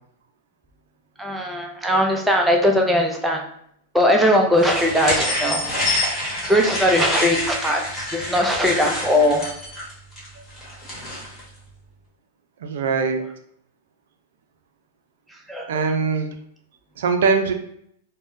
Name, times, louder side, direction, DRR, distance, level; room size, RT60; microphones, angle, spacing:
voice 1, 1.2-3.4 3.9-5.6 6.5-9.5 15.5-15.7, equal, 5° right, 0 dB, 0.4 m, -19 dB
sound 1, 4.6-11.4, left 1 dB, 15° left, 1.2 m, -27 dB
voice 2, 12.6-13.2 15.7-16.3 17.0-17.5, right 5 dB, 80° right, 6 dB, 0.4 m, -21 dB
3.5 x 2.1 x 2.6 m, 0.70 s
supercardioid pair, 145°, 0 cm